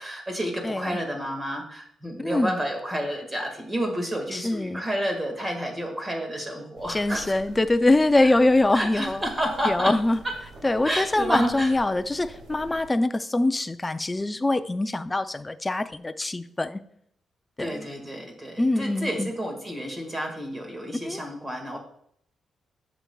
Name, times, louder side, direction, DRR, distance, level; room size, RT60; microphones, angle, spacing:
voice 1, 0.0-7.3 8.7-9.9 10.2-10.3 10.8-11.7 17.6-21.8, equal, 15° right, 3 dB, 1.7 m, -30 dB
voice 2, 0.6-1.0 2.2-2.5 4.3-4.8 6.9-9.2 9.6-10.2 10.6-16.8 17.6-17.9 18.6-19.3 21.0-21.2, left 2 dB, 15° left, 10 dB, 0.4 m, -23 dB
sound 1, 6.7-12.9, right 2 dB, 75° right, 2.4 m, -47 dB
10.0 x 7.1 x 2.3 m, 0.68 s
wide cardioid pair, 155°, 0 cm